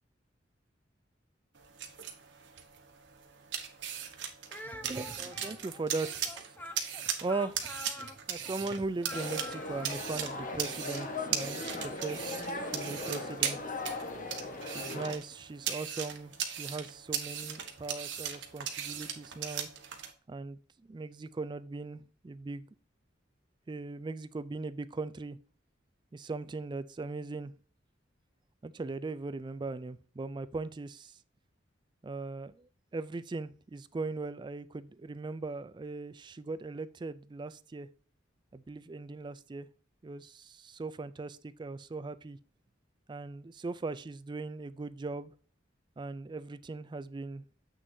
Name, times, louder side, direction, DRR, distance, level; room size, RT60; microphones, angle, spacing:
sound 1, 1.5-20.1, right 8 dB, 70° right, 1.1 m, -39 dB
Speech, 4.5-10.0, left 1 dB, 10° left, 0.8 m, -46 dB
voice 1, 4.7-6.5 7.2-13.6 14.6-19.7 20.3-22.7 23.7-25.4 26.1-27.5 28.6-31.2 32.0-37.9 38.5-39.7 40.0-42.4 43.1-45.3 46.0-47.6, right 3 dB, 25° right, 0.3 m, -39 dB
sound 2, 9.1-15.2, left 2 dB, 45° left, 1.2 m, -39 dB
7.7 x 6.3 x 2.7 m
head